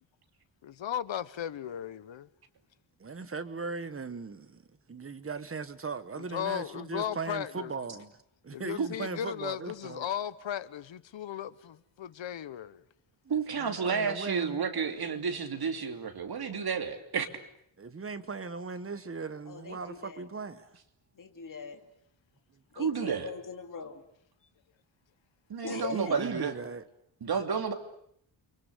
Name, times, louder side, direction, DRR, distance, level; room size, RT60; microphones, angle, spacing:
voice 1, 0.6-2.3 6.1-7.7 8.5-12.8, left 10 dB, 70° left, 1.2 m, -36 dB
voice 2, 3.0-4.6 4.9-8.2 8.4-10.1 13.2-14.6 17.8-20.8 25.7-26.8, right 4 dB, 30° right, 1.4 m, -38 dB
voice 3, 13.3-17.3 22.7-23.3 25.5-26.5 27.2-27.7, right 6 dB, 50° right, 3.0 m, -31 dB
voice 4, 19.4-20.3 21.1-21.8 22.7-24.0 25.6-26.2, left 5 dB, 40° left, 2.8 m, -41 dB
29.5 x 24.5 x 8.2 m
wide cardioid pair, 170°, 47 cm